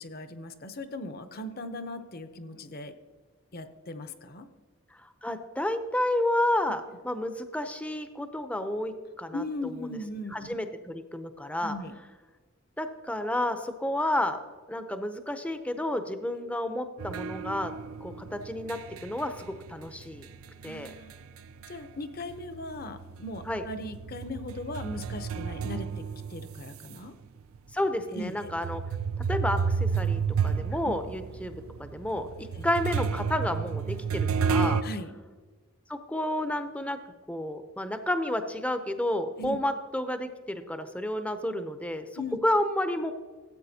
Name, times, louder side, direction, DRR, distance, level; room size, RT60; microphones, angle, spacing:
voice 1, 0.0-2.9 3.5-4.5 9.3-10.6 11.6-11.9 20.6-21.1 21.7-25.9 26.3-27.1 28.1-28.5 30.8-30.9 32.5-32.7 34.8-35.1 39.4-39.6 42.2-42.4, left 1 dB, 45° left, 10 dB, 0.7 m, -38 dB
voice 2, 5.0-10.0 10.3-11.8 12.8-14.4 14.7-17.7 18.0-20.3 20.6-20.9 23.4-23.6 27.7-28.8 29.3-32.3 32.6-34.8 35.9-37.0 37.3-43.1, left 1 dB, 5° left, 8 dB, 0.5 m, -31 dB
sound 1, 17.0-22.0 22.3-27.0 27.6-27.7 28.4-34.8, right 6 dB, 75° right, 0.4 m, -31 dB
14.0 x 8.3 x 2.8 m, 1.5 s
head